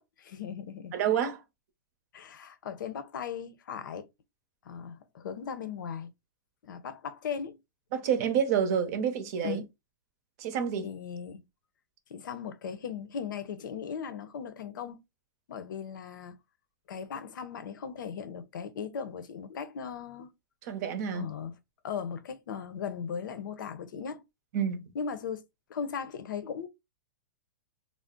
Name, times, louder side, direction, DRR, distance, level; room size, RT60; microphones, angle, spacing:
voice 1, 0.0-1.0 2.1-4.1 4.6-6.1 6.6-7.6 9.4-9.7 10.8-11.4 12.1-15.0 15.5-16.4 16.9-20.3 21.1-21.5 21.8-24.2 24.9-25.4 25.7-26.7, left 7 dB, 85° left, 0.6 m, -38 dB
voice 2, 0.9-1.4 7.9-9.6 10.4-10.9 20.7-21.3 24.5-24.9, right 8 dB, 50° right, 0.7 m, -28 dB
2.4 x 2.0 x 3.7 m
hypercardioid pair, 150°, 10 cm